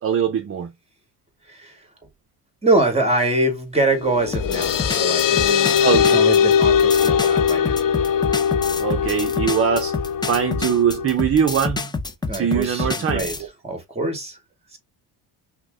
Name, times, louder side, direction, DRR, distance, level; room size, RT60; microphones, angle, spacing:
voice 1, 0.0-0.7 5.8-6.2 8.8-10.0 10.3-11.9 12.3-13.3, right 8 dB, 35° right, 0.6 m, -21 dB
voice 2, 1.5-1.9 2.6-7.8 12.3-13.3 13.6-14.4 14.7-14.8, right 2 dB, 15° right, 1.8 m, -24 dB
sound 1, 4.0-11.1, left 8 dB, 55° left, 0.6 m, -20 dB
sound 2, 4.3-13.4, left 3 dB, 10° left, 0.5 m, -28 dB
5.8 x 2.2 x 3.5 m
cardioid pair, 130°, 40 cm